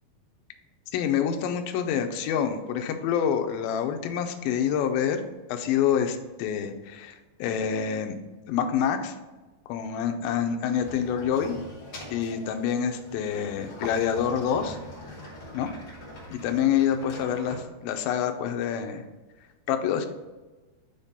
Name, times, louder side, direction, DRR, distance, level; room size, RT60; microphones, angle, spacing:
voice 1, 0.9-5.2 5.5-8.2 8.5-9.2 9.7-11.6 12.1-14.8 15.5-15.7 16.3-19.0 19.7-20.1, left 8 dB, 80° left, 6 dB, 2.2 m, -27 dB
sound 1, 10.8-17.7, left 1 dB, 60° left, 1.1 m, -43 dB
7.1 x 3.7 x 4.1 m, 1.2 s
omnidirectional pair, 4.6 m